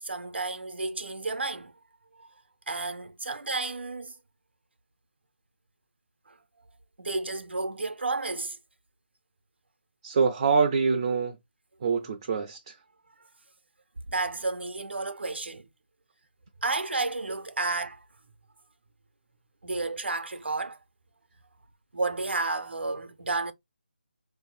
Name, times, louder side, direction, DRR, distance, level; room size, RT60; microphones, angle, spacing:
voice 1, 0.0-1.7 2.1-2.3 2.7-4.2 6.3-6.4 7.0-8.6 13.2-13.3 14.1-15.7 16.6-18.0 19.6-20.8 21.9-23.5, right 3 dB, 90° right, 0.6 m, -31 dB
voice 2, 10.0-11.4 11.8-12.8, right 5 dB, 25° right, 0.3 m, -25 dB
3.9 x 2.6 x 2.3 m
figure-of-eight pair, 165°, 6 cm